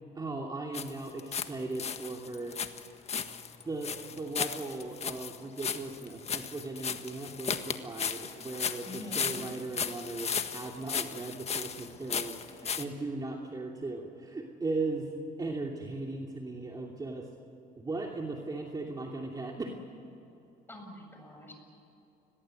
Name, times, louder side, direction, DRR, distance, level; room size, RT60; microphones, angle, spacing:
voice 1, 0.1-2.6 3.6-15.1 15.4-17.3 17.8-19.7, right 3 dB, 20° right, 0 dB, 2.9 m, -37 dB
sound 1, 0.7-1.5 1.7-12.8, left 6 dB, 40° left, 1.6 m, -35 dB
voice 2, 8.8-9.5 20.7-21.5, left 1 dB, 10° left, 2 dB, 7.8 m, -45 dB
29.5 x 22.0 x 7.9 m, 3.0 s
cardioid pair, 110°, 17 cm